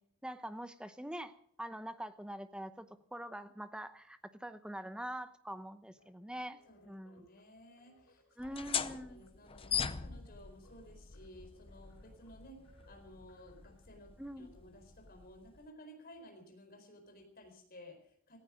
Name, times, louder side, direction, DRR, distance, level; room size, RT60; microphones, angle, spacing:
voice 1, 0.2-7.2 8.4-9.3 14.2-14.5, right 1 dB, 5° right, 11 dB, 0.8 m, -44 dB
sound 1, 6.0-14.2, equal, 60° left, 2.5 m, -68 dB
voice 2, 6.7-8.2 8.9-18.4, left 1 dB, 40° left, 4 dB, 4.4 m, -56 dB
sound 2, 8.4-15.7, left 7 dB, 25° left, 0.6 m, -42 dB
18.0 x 15.0 x 5.1 m, 0.64 s
head